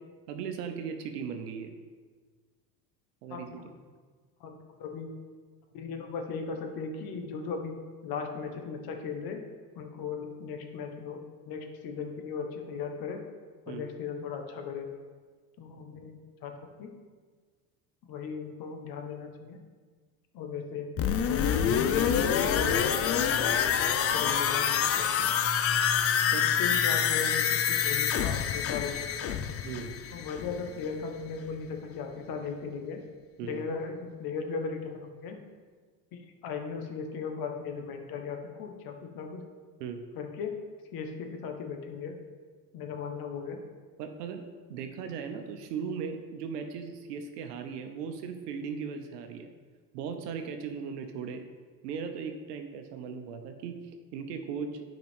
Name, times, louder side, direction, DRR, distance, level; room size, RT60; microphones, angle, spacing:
voice 1, 0.3-1.7 3.2-3.6 13.7-13.9 26.3-26.5 29.6-30.0 33.4-33.6 39.8-40.0 44.0-44.4 44.7-49.5 49.9-51.4 51.8-53.8 54.1-54.8, right 6 dB, 75° right, 6 dB, 1.0 m, -37 dB
voice 2, 3.3-3.6 4.4-5.1 5.7-7.8 8.0-9.4 9.8-13.2 13.7-14.9 15.6-16.9 18.1-19.6 20.3-20.9 21.3-22.8 23.8-25.3 26.6-29.4 30.1-33.0 33.4-35.4 36.1-39.4 40.1-40.6 40.9-42.2 42.7-43.6, left 5 dB, 50° left, 4 dB, 1.3 m, -37 dB
sound 1, 21.0-30.7 31.0-31.1, left 8 dB, 30° left, 0.5 m, -26 dB
9.2 x 5.2 x 3.6 m, 1.5 s
hypercardioid pair, 85°, 48 cm